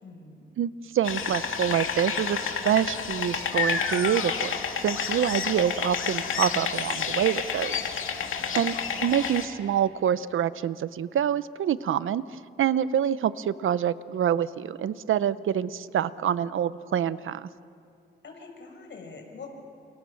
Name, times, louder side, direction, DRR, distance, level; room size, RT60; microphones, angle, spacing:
voice 1, 0.0-0.5 8.3-8.8 18.2-19.5, left 4 dB, 65° left, 3 dB, 6.1 m, -45 dB
voice 2, 0.6-4.5 4.8-7.8 8.5-8.8 9.0-17.5, right 9 dB, 85° right, 16 dB, 0.8 m, -26 dB
sound 1, 1.0-9.5, left 6 dB, 85° left, 2.2 m, -29 dB
30.0 x 28.0 x 7.2 m, 2.4 s
cardioid pair, 105°, 20 cm